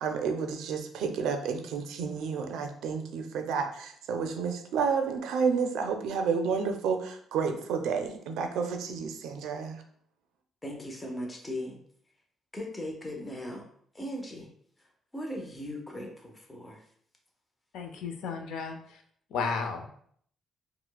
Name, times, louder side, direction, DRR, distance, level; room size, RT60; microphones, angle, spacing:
voice 1, 0.0-9.8, right 5 dB, 85° right, 6 dB, 0.4 m, -30 dB
voice 2, 10.6-11.8 12.5-13.7 13.9-14.5 14.8-16.8, left 1 dB, 15° left, 1 dB, 0.6 m, -38 dB
voice 3, 17.7-19.0 19.3-19.9, left 5 dB, 85° left, 5 dB, 0.4 m, -33 dB
4.3 x 2.0 x 2.2 m, 0.63 s
cardioid pair, 90°, 0 cm